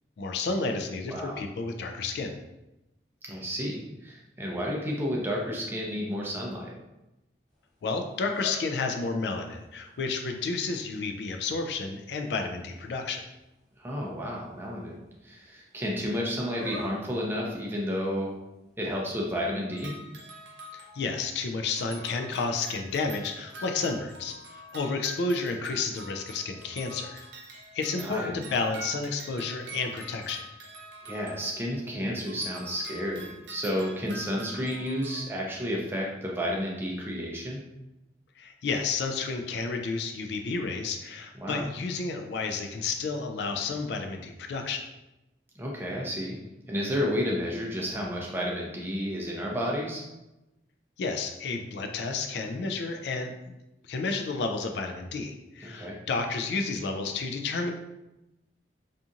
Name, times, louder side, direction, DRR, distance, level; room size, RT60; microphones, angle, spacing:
voice 1, 0.2-2.4 7.8-13.2 20.7-27.2 27.7-30.4 38.4-44.8 51.0-53.6 53.8-57.7, left 4 dB, 70° left, 4 dB, 0.3 m, -31 dB
voice 2, 1.1-1.4 3.2-6.7 13.8-18.3 18.8-19.9 28.0-28.4 31.0-37.6 41.4-41.6 45.6-46.4 46.7-50.0 55.6-56.0, equal, 10° right, -3 dB, 0.4 m, -31 dB
sound 1, 7.5-19.4, left 3 dB, 5° left, 0.8 m, -50 dB
sound 2, 19.7-21.4 21.7-31.9 32.2-35.2, right 1 dB, 80° right, 0.5 m, -45 dB
2.7 x 2.5 x 2.4 m, 0.96 s
head